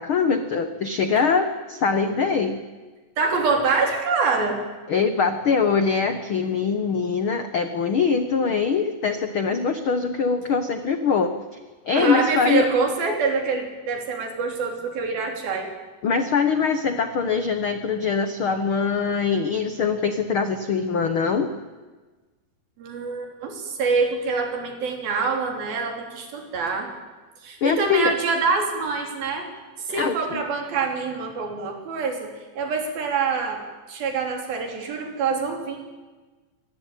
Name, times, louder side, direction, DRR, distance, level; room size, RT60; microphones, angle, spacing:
voice 1, 0.0-2.6 4.9-11.3 11.9-12.6 16.0-21.5 27.6-28.1 29.9-30.4, left 5 dB, 80° left, 9 dB, 1.1 m, -23 dB
voice 2, 3.2-4.6 12.0-15.7 22.8-26.9 27.4-29.5 29.9-32.3 32.6-33.6 33.9-35.8, right 4 dB, 80° right, 3 dB, 5.2 m, -25 dB
24.0 x 19.5 x 9.2 m, 1.3 s
omnidirectional pair, 4.2 m